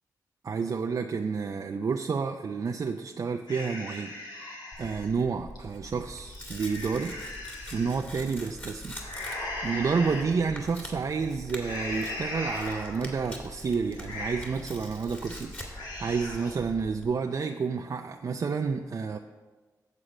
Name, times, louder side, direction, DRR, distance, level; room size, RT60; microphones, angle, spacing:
voice 1, 0.4-7.1 7.5-9.0 9.3-19.2, right 5 dB, 55° right, 4 dB, 0.5 m, -30 dB
sound 1, 3.5-5.1 5.6-5.7 6.1-8.0 9.0-10.3 10.7-11.1 11.6-13.1 13.5-13.6 14.0-14.7 15.1-15.4 15.7-16.6, left 1 dB, 85° left, 1.9 m, -38 dB
Tearing, 4.7-17.1, left 1 dB, 25° left, 2.4 m, -44 dB
8.1 x 7.3 x 5.1 m, 1.3 s
cardioid pair, 65°, 7 cm